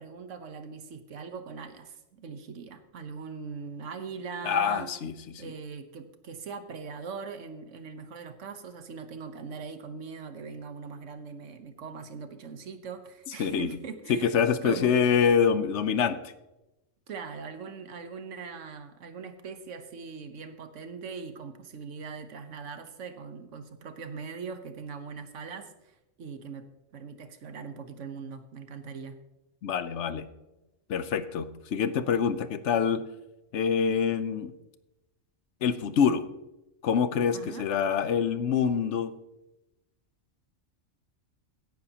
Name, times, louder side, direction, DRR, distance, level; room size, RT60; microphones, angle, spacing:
voice 1, 0.0-4.9 5.4-14.3 14.6-15.0 17.1-26.6 26.9-29.2 37.3-37.7, right 5 dB, 75° right, 9 dB, 1.3 m, -41 dB
voice 2, 4.4-5.5 13.4-13.7 14.1-16.2 29.6-30.3 30.9-33.0 33.5-34.5 35.6-36.3 36.8-39.1, left 7 dB, 70° left, 13 dB, 1.0 m, -26 dB
16.5 x 9.9 x 2.9 m, 0.97 s
omnidirectional pair, 1.3 m